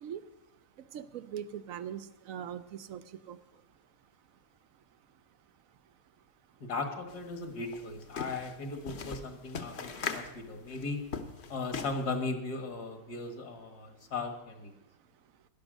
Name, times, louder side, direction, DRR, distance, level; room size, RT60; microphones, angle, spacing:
voice 1, 0.9-3.4, right 9 dB, 65° right, 14 dB, 0.9 m, -41 dB
voice 2, 6.6-11.1 11.5-14.7, left 3 dB, 70° left, 6 dB, 2.0 m, -37 dB
sound 1, 7.1-7.2 7.5-12.1, left 5 dB, 45° left, 1.1 m, -39 dB
11.5 x 11.0 x 6.3 m, 0.95 s
omnidirectional pair, 1.8 m